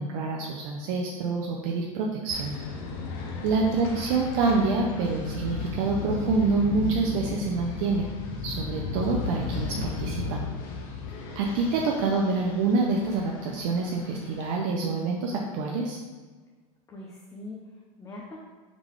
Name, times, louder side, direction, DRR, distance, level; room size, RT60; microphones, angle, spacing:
voice 1, 0.0-2.6 3.4-8.0 8.4-10.4 11.4-16.0, right 3 dB, 60° right, 0 dB, 0.5 m, -27 dB
sound 1, 2.3-14.6, left 4 dB, 60° left, 0.7 m, -35 dB
voice 2, 3.3-3.9 16.9-18.4, left 2 dB, 15° left, -2 dB, 0.5 m, -44 dB
3.7 x 3.7 x 3.1 m, 1.4 s
supercardioid pair, 130°, 18 cm